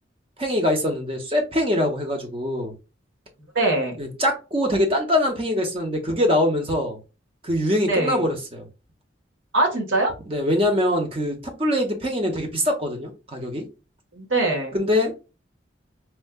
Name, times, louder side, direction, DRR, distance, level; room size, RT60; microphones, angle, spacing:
voice 1, 0.4-2.7 4.0-7.0 7.4-8.7 10.3-13.7 14.7-15.3, left 1 dB, 30° right, 0.8 m, -23 dB
voice 2, 3.5-4.0 7.9-8.2 9.5-10.1 14.1-14.8, right 2 dB, 90° right, 1.2 m, -22 dB
4.4 x 2.3 x 2.2 m
head